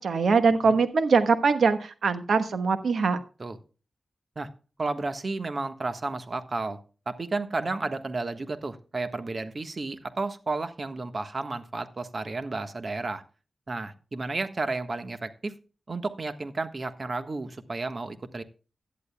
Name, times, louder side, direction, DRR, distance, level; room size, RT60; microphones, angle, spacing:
voice 1, 0.0-3.2, right 4 dB, 80° right, 9 dB, 1.2 m, -22 dB
voice 2, 4.8-6.8 7.1-13.2 13.7-15.5 15.9-18.4, right 3 dB, 50° right, 9 dB, 1.4 m, -32 dB
16.5 x 11.0 x 2.3 m, 0.35 s
cardioid pair, 55°, 0 cm